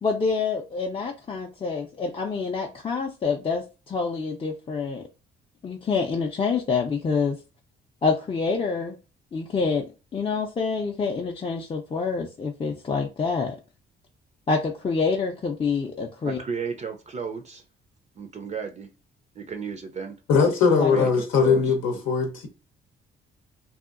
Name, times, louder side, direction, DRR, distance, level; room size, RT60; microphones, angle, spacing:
voice 1, 0.0-5.0 5.6-7.4 8.0-8.9 9.3-9.8 10.1-13.6 14.5-16.4 20.8-20.9, left 4 dB, 25° left, 0.4 m, -27 dB
voice 2, 16.2-17.6 18.2-18.9 19.3-20.2 20.9-22.0, right 5 dB, 35° right, 0.4 m, -34 dB
voice 3, 20.3-22.5, left 5 dB, 85° left, 0.7 m, -20 dB
2.7 x 2.4 x 2.4 m
cardioid pair, 90°, 20 cm